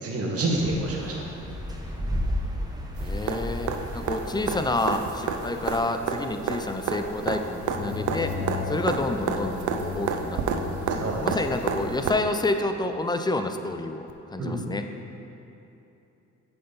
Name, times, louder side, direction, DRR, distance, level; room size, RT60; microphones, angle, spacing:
voice 1, 0.0-1.1 11.0-11.3 14.4-14.6, right 2 dB, 50° right, -2 dB, 1.5 m, -27 dB
sound 1, 0.5-5.9, equal, 15° right, 0.9 m, -33 dB
voice 2, 3.0-8.3 8.7-14.8, left 2 dB, 15° left, 7 dB, 0.4 m, -29 dB
sound 2, 3.0-12.1 14.1-14.2, right 5 dB, 70° right, 0.6 m, -31 dB
sound 3, 7.4-12.0, left 4 dB, 80° left, 1.0 m, -35 dB
7.6 x 5.7 x 4.0 m, 2.9 s
cardioid pair, 90°, 30 cm